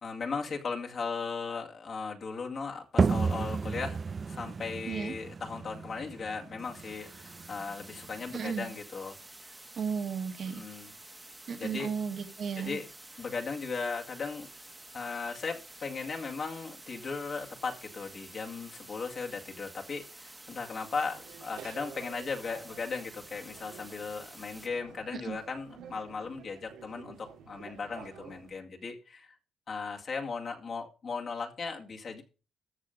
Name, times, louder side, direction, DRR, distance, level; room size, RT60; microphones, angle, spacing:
voice 1, 0.0-4.0 4.3-9.2 9.4-9.6 10.5-10.9 11.5-11.9 12.6-12.9 13.2-14.5 14.9-29.4 29.7-32.2, left 4 dB, 50° left, 2.1 m, -37 dB
sound 1, 3.0-8.4, right 5 dB, 40° right, 0.4 m, -32 dB
sound 2, 6.6-24.7, right 2 dB, 15° right, 1.3 m, -50 dB
voice 2, 8.3-8.7 9.8-10.6 11.5-12.8 25.1-25.4, right 6 dB, 55° right, 1.7 m, -34 dB
sound 3, 21.1-28.6, right 7 dB, 90° right, 2.3 m, -51 dB
13.5 x 6.5 x 5.3 m
cardioid pair, 90°, 0 cm